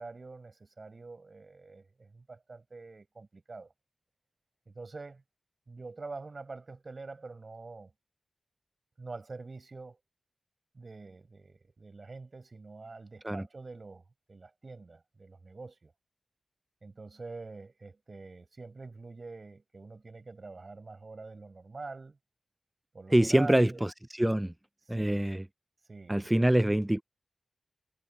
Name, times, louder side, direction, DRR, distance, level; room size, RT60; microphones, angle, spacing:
voice 1, 0.0-3.7 4.7-5.2 5.7-7.9 9.0-10.0 10.7-15.9 16.8-22.2 22.9-23.8 24.9-25.3 25.9-26.5, right 3 dB, 50° right, 5.9 m, -45 dB
voice 2, 23.1-23.9 24.2-24.5 24.9-25.4 26.1-27.0, right 1 dB, 15° right, 0.5 m, -25 dB
cardioid pair, 60°, 0 cm